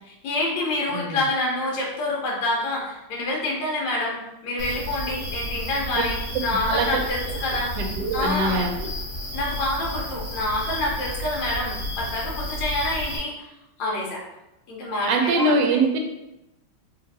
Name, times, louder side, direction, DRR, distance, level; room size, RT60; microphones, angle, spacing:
voice 1, 0.0-4.2 4.4-7.7 8.1-8.6 9.3-13.5 13.8-14.2 14.7-15.8, left 2 dB, 70° left, -3 dB, 1.6 m, -27 dB
voice 2, 0.9-1.2 6.0-6.1 6.5-6.9 7.8-8.9 15.1-16.0, right 2 dB, 75° right, 3 dB, 1.0 m, -23 dB
sound 1, 4.6-13.2, equal, 45° left, 1.5 m, -32 dB
4.4 x 2.5 x 2.6 m, 0.91 s
omnidirectional pair, 2.2 m